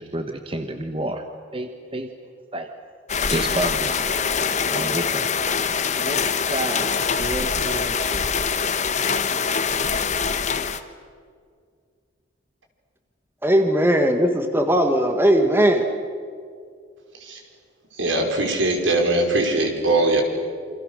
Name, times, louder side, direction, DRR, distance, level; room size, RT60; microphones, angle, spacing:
voice 1, 0.0-2.1 2.5-2.7 3.3-5.3 6.0-6.2 6.5-8.2, right 1 dB, 25° right, 6 dB, 1.2 m, -30 dB
sound 1, 3.1-10.8, left 6 dB, 35° left, 1.1 m, -24 dB
voice 2, 13.4-15.9, equal, 10° right, 6 dB, 1.6 m, -18 dB
voice 3, 18.0-20.2, right 2 dB, 80° right, 3 dB, 5.0 m, -21 dB
28.5 x 26.0 x 6.6 m, 2.1 s
head